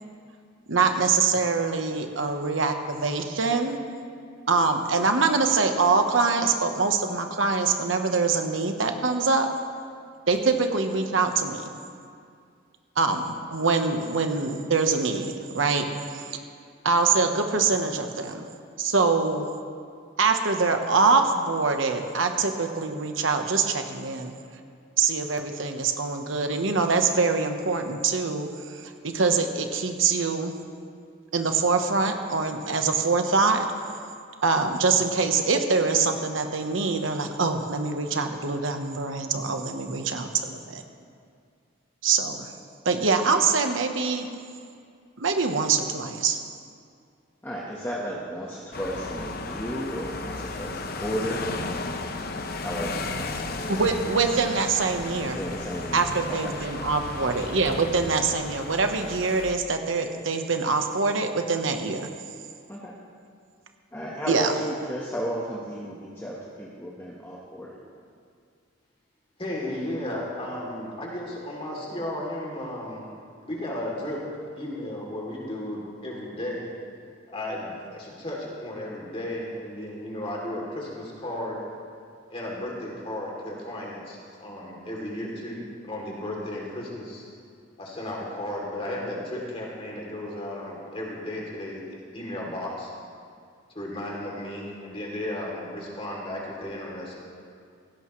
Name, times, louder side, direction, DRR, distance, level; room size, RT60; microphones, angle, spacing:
voice 1, 0.7-3.8 4.5-9.5 10.3-11.7 13.0-15.9 16.1-16.4 16.8-18.5 18.8-19.4 20.2-24.3 25.0-30.5 31.3-33.7 34.4-40.8 42.0-42.5 42.8-44.3 45.2-46.4 53.7-55.4 55.9-62.1 64.3-64.5, right 4 dB, 75° right, 5 dB, 1.1 m, -24 dB
voice 2, 47.4-51.9 52.6-53.0 55.2-56.0 56.3-56.5 62.7-62.9 63.9-67.8, equal, 10° left, -5 dB, 1.3 m, -33 dB
sound 1, 48.7-59.5, left 3 dB, 50° left, 0.8 m, -34 dB
voice 3, 69.4-73.1 73.4-74.3 74.6-76.7 77.3-81.6 82.3-87.2 87.8-91.8 92.1-92.9 93.7-97.2, left 1 dB, 30° left, -3 dB, 3.0 m, -34 dB
17.0 x 16.5 x 3.2 m, 2.3 s
head